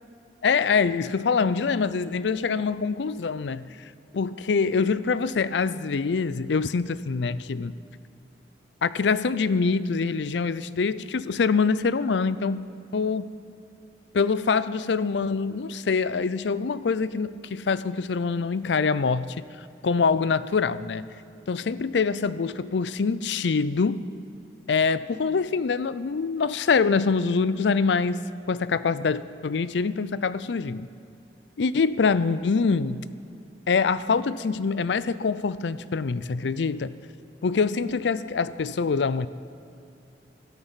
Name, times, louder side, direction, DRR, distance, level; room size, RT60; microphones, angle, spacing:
voice 1, 0.4-3.7 4.1-7.7 8.8-12.7 12.9-13.2 14.1-19.4 19.8-21.1 21.5-24.0 24.7-28.2 28.5-30.9 31.6-33.0 33.7-36.9 37.4-39.3, left 5 dB, 85° left, 16 dB, 0.5 m, -25 dB
13.5 x 12.5 x 5.7 m, 2.7 s
head